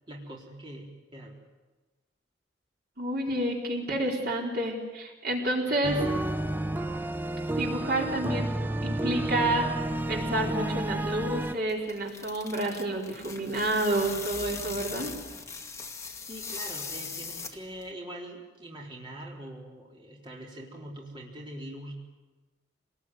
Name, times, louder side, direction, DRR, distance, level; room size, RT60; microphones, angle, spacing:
voice 1, 0.1-1.4 16.3-21.9, right 1 dB, 25° right, -2 dB, 4.0 m, -43 dB
voice 2, 3.0-6.0 7.5-15.1, right 1 dB, 55° right, 0 dB, 4.3 m, -29 dB
sound 1, 5.8-11.5, right 1 dB, 10° right, 0.7 m, -30 dB
sound 2, 11.5-17.9, left 5 dB, 15° left, 1.9 m, -40 dB
27.0 x 19.5 x 9.5 m, 1.2 s
head